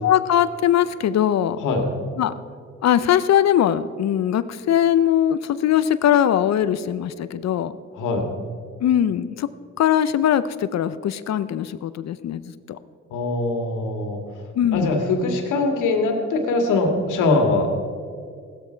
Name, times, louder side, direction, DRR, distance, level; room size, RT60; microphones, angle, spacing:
voice 1, 0.0-1.6 2.2-2.3 2.8-7.7 8.8-9.5 9.8-12.4 12.7-12.8 14.6-14.9, left 10 dB, 60° left, 14 dB, 0.7 m, -20 dB
voice 2, 7.9-8.3 13.1-14.2 14.7-17.7, left 3 dB, 85° left, 4 dB, 2.2 m, -22 dB
15.5 x 13.0 x 4.5 m, 2.2 s
cardioid pair, 90°, 30 cm